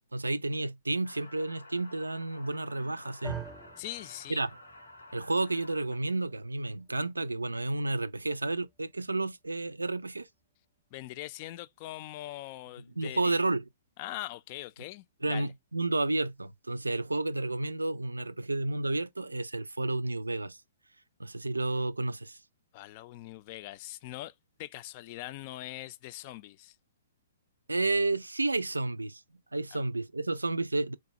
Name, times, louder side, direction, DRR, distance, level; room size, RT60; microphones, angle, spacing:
voice 1, 0.0-3.4 4.3-4.5 5.1-10.3 13.0-13.6 15.2-20.6 21.2-22.4 27.7-29.2 29.5-31.0, right 2 dB, 85° right, 0.4 m, -31 dB
sound 1, 1.0-5.9, left 2 dB, 85° left, 0.7 m, -52 dB
sound 2, 3.2-11.5, right 7 dB, 10° right, 0.6 m, -49 dB
voice 2, 3.8-4.4 10.9-13.3 14.0-15.5 22.7-24.3 24.6-26.7 29.7-29.8, left 16 dB, 40° left, 0.3 m, -42 dB
4.0 x 2.2 x 2.7 m
figure-of-eight pair, 120°, 0 cm